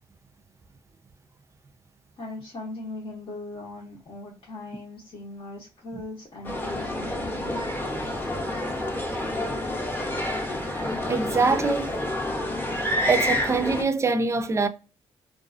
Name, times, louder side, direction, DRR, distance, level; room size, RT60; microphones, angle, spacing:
voice 1, 2.2-7.6, left 2 dB, 55° left, 0.8 m, -39 dB
sound 1, 6.4-13.8, left 1 dB, 20° left, 0.7 m, -28 dB
voice 2, 11.1-11.9 13.1-14.7, right 4 dB, 25° right, 0.4 m, -24 dB
2.3 x 2.3 x 2.4 m
cardioid pair, 75°, 11 cm